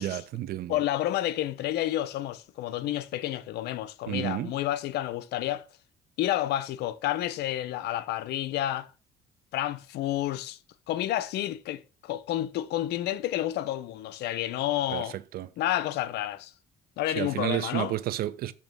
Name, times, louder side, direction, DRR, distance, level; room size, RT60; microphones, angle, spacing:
voice 1, 0.0-0.8 4.1-4.5 14.9-15.5 17.2-18.5, right 13 dB, 65° right, 0.5 m, -31 dB
voice 2, 0.7-5.7 6.2-8.9 9.5-10.6 10.9-15.2 15.6-16.5 17.0-17.9, left 13 dB, 75° left, 0.6 m, -30 dB
7.1 x 3.0 x 6.0 m
cardioid pair, 110°, 17 cm